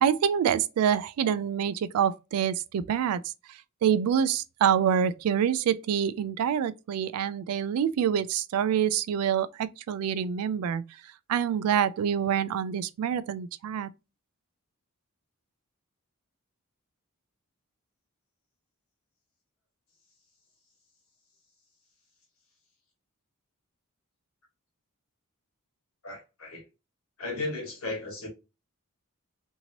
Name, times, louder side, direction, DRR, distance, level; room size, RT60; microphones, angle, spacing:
voice 1, 0.0-3.2 3.8-10.8 11.3-13.9, right 8 dB, 80° right, 0.3 m, -26 dB
voice 2, 26.0-26.6 27.2-28.3, left 2 dB, 70° left, 1.4 m, -35 dB
2.9 x 2.6 x 2.8 m
head